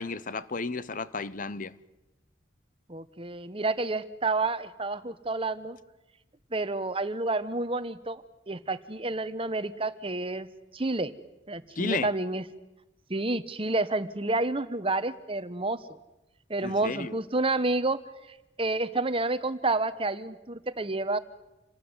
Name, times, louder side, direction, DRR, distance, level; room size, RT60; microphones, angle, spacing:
voice 1, 0.0-1.7 11.8-12.1 16.6-17.2, left 4 dB, 40° left, 0.8 m, -33 dB
voice 2, 2.9-5.8 6.5-10.5 10.7-11.1 11.5-12.4 13.1-15.8 16.5-18.0 18.6-21.2, right 2 dB, 30° right, 1.1 m, -29 dB
28.0 x 19.0 x 9.7 m
head